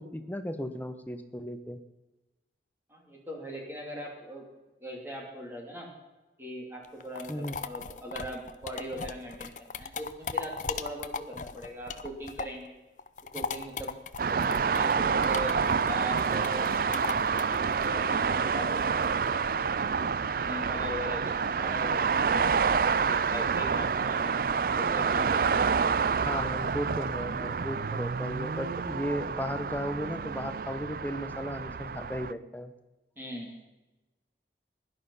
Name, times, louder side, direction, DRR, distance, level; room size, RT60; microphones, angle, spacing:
voice 1, 0.0-1.8 7.3-7.6 26.2-32.7, equal, 10° left, 8 dB, 1.0 m, -35 dB
voice 2, 2.9-4.4 4.8-5.9 6.4-12.7 13.3-13.9 14.3-17.5 17.8-19.4 19.9-20.1 20.4-24.3 24.7-25.8 33.2-33.6, equal, 15° right, 0 dB, 2.7 m, -40 dB
sound 1, 6.8-12.7 13.0-19.3, left 4 dB, 45° left, 0.7 m, -38 dB
sound 2, 14.2-32.3, right 6 dB, 50° right, 0.4 m, -28 dB
16.5 x 11.5 x 5.6 m, 1.1 s
head